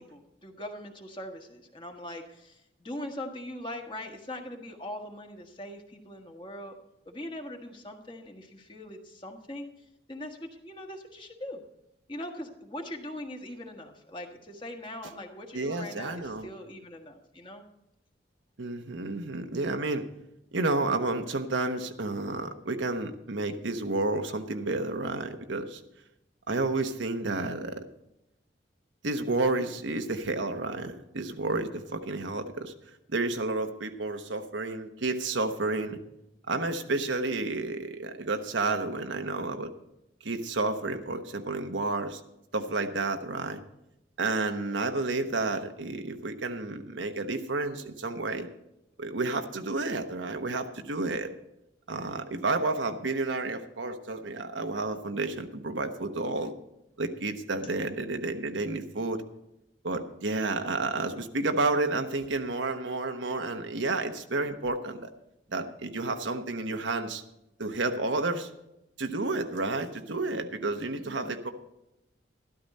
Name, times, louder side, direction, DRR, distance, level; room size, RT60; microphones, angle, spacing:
voice 1, 0.0-6.8 7.0-9.7 10.1-11.6 12.1-17.6 44.6-45.1 70.9-71.4, left 1 dB, 25° left, 2 dB, 1.5 m, -41 dB
voice 2, 15.5-16.5 18.6-20.0 20.5-25.8 26.5-27.8 29.0-32.7 33.1-36.0 36.5-39.7 40.2-42.2 42.5-43.6 44.2-48.5 49.0-51.3 51.9-56.5 57.0-59.2 59.8-65.1 65.5-67.2 67.6-68.5 69.0-71.5, right 2 dB, 85° right, 6 dB, 1.1 m, -31 dB
13.0 x 12.5 x 4.2 m, 0.87 s
head